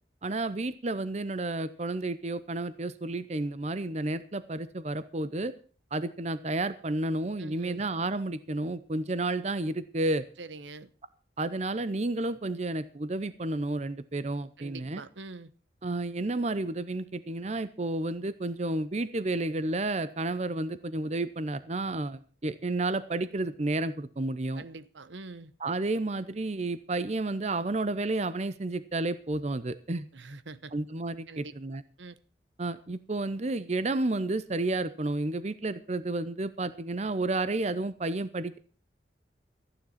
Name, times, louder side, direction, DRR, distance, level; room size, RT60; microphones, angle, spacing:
voice 1, 0.2-5.5 5.9-10.2 11.4-15.0 15.8-24.6 25.6-30.1 30.7-31.8 32.6-38.6, right 2 dB, 35° right, 0.7 m, -31 dB
voice 2, 7.4-7.8 10.4-10.9 14.6-15.5 24.5-25.5 30.1-30.7 31.3-31.5 32.0-32.2, right 3 dB, 85° right, 1.0 m, -44 dB
14.5 x 10.0 x 5.8 m
head